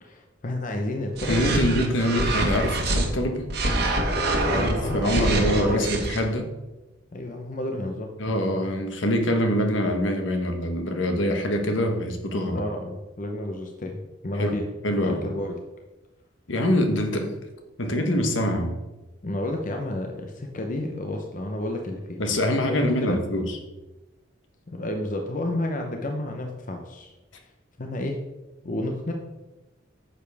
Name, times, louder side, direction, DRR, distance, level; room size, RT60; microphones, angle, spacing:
voice 1, 0.0-1.8 2.1-2.3 4.5-5.9 7.1-8.1 12.5-14.7 15.2-15.6 19.2-22.2 22.7-23.2 24.7-27.5 27.8-28.2 28.6-29.1, left 1 dB, 40° left, 3 dB, 0.8 m, -31 dB
sound 1, 1.1-3.0 3.5-6.2, right 1 dB, 55° right, 1.5 m, -25 dB
voice 2, 1.3-3.5 4.6-6.5 8.2-12.6 14.4-15.3 16.5-17.3 17.8-18.8 22.2-23.4, equal, 70° left, 5 dB, 1.2 m, -24 dB
10.0 x 7.0 x 3.5 m, 1.1 s
head